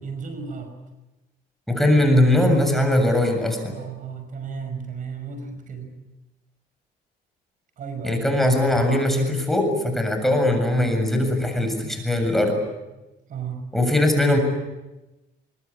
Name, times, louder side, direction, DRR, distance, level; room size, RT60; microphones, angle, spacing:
voice 1, 0.0-0.8 3.7-6.0 7.8-8.2 13.3-13.7, right 5 dB, 50° right, 7 dB, 5.7 m, -34 dB
voice 2, 1.7-3.8 8.0-12.5 13.7-14.4, left 1 dB, ahead, 4 dB, 7.2 m, -20 dB
24.5 x 22.5 x 9.8 m, 1.0 s
cardioid pair, 110°, 17 cm